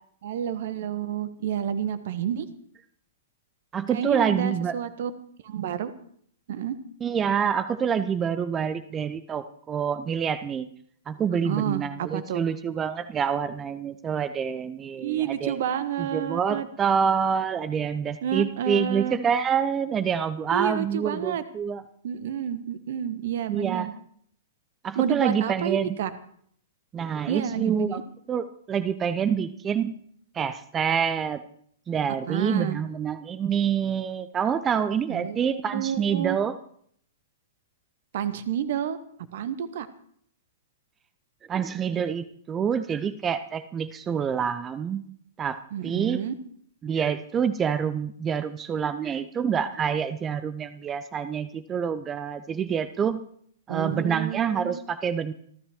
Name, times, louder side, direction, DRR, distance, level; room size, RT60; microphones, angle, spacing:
voice 1, 0.2-2.5 3.9-5.1 5.4-5.9 6.5-6.8 11.3-12.4 15.0-16.7 18.2-19.2 20.5-21.4 22.0-23.9 24.9-26.1 27.3-28.0 32.3-32.8 35.1-36.4 38.1-39.0 39.3-39.9 45.7-46.3 53.7-54.8, right 9 dB, 50° right, 13 dB, 1.2 m, -29 dB
voice 2, 3.7-4.7 7.0-10.7 11.1-15.6 16.0-21.8 23.5-23.9 24.8-26.0 26.9-28.0 28.3-30.0 30.3-31.4 31.9-36.6 41.5-45.0 45.4-45.6 45.8-46.2 46.8-53.2 53.7-55.3, right 7 dB, 20° right, 13 dB, 0.6 m, -27 dB
27.5 x 13.0 x 3.1 m, 0.64 s
figure-of-eight pair, 110°, 0 cm